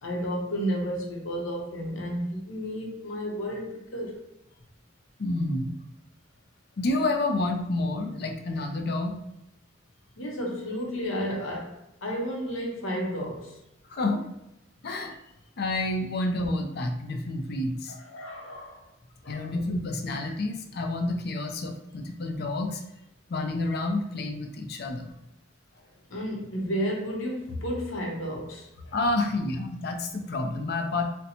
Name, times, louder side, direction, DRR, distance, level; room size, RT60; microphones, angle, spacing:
voice 1, 0.0-4.2 10.2-13.6 17.9-18.8 19.2-19.5 26.1-29.0, equal, 80° left, -1 dB, 0.8 m, -32 dB
voice 2, 5.2-5.7 6.8-9.2 13.9-14.2 14.8-15.2 15.6-17.9 19.3-22.8 23.3-25.1 28.9-31.0, left 2 dB, 55° left, 4 dB, 0.5 m, -29 dB
4.1 x 2.2 x 2.7 m, 0.88 s
head